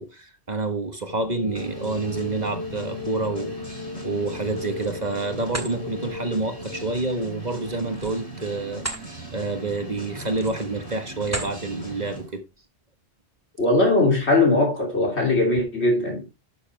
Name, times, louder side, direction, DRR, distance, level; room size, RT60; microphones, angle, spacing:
voice 1, 0.0-3.6 4.0-12.4, right 3 dB, 40° right, 1.4 m, -28 dB
sound 1, 1.1-8.5, left 3 dB, 55° left, 2.0 m, -37 dB
sound 2, 1.5-12.3, right 2 dB, 30° left, 6.5 m, -39 dB
sound 3, 4.4-5.0 5.4-5.7 7.9-9.1 9.5-9.7 10.3-10.7 11.2-11.6, right 2 dB, 15° right, 1.7 m, -34 dB
voice 2, 13.6-16.3, left 2 dB, 75° left, 3.3 m, -20 dB
12.0 x 7.0 x 3.3 m
omnidirectional pair, 1.1 m